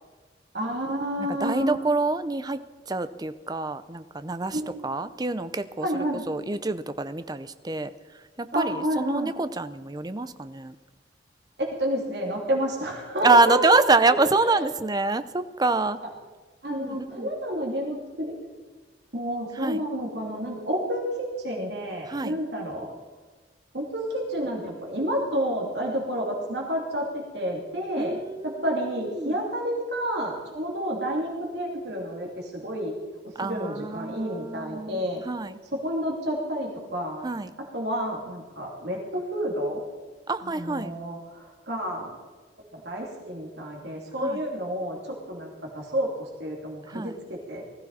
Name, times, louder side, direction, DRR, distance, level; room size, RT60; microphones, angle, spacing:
voice 1, 0.5-1.8 4.5-4.8 5.8-6.2 8.5-9.3 11.6-13.6 14.0-14.1 14.4-14.6 16.0-16.1 16.6-18.3 19.1-22.9 23.7-28.2 28.4-32.9 33.4-35.2 35.7-37.3 37.7-39.8 40.4-42.1 42.7-47.6, equal, 70° right, -1 dB, 3.0 m, -30 dB
voice 2, 1.2-2.6 2.9-5.9 6.3-7.9 8.4-10.7 13.2-16.0 16.8-17.3 19.6-19.8 22.1-22.4 28.0-29.4 33.4-35.6 37.2-37.5 40.3-41.0 44.2-44.4 46.9-47.2, right 3 dB, 20° right, 12 dB, 0.6 m, -26 dB
19.5 x 14.5 x 4.2 m, 1.3 s
head